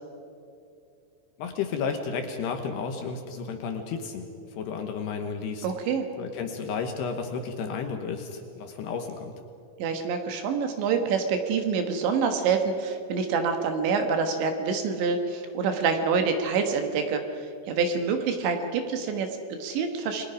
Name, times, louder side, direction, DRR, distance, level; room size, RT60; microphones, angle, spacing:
voice 1, 1.4-5.7 6.2-9.3, left 5 dB, 70° left, 5 dB, 2.8 m, -32 dB
voice 2, 5.6-6.1 9.8-17.2 17.7-20.3, right 5 dB, 70° right, 5 dB, 3.5 m, -26 dB
29.0 x 21.5 x 5.1 m, 2.5 s
omnidirectional pair, 5.7 m